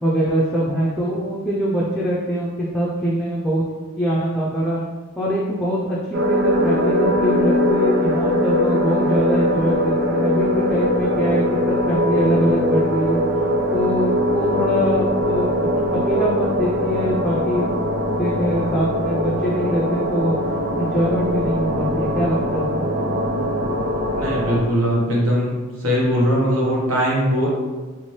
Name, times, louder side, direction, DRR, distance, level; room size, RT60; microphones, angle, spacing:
voice 1, 0.0-3.6 4.0-4.8 5.2-13.2 13.7-17.8 18.1-20.4 20.8-22.9, equal, 5° left, -6 dB, 0.4 m, -23 dB
sound 1, 6.1-24.6, left 1 dB, 60° right, 0.5 m, -21 dB
voice 2, 24.2-25.5 25.8-27.5, equal, 80° right, -4 dB, 1.0 m, -20 dB
2.9 x 2.5 x 3.1 m, 1.3 s
head